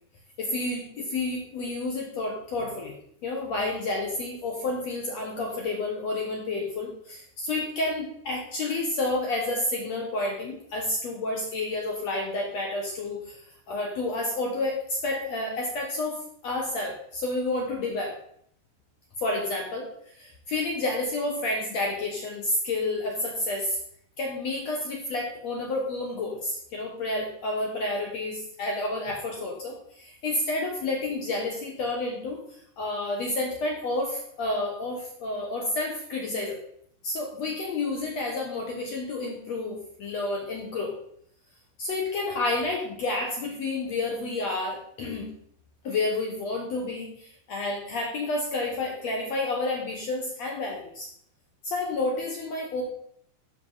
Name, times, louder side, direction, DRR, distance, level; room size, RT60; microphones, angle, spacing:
voice 1, 0.4-2.9 3.2-13.4 13.7-16.2 16.4-18.1 19.2-19.9 20.2-23.8 24.2-32.4 32.8-36.6 37.0-40.9 41.8-45.3 45.8-51.1 51.6-52.8, left 2 dB, 70° left, 0 dB, 1.6 m, -30 dB
11.5 x 6.0 x 4.0 m, 0.67 s
omnidirectional pair, 4.7 m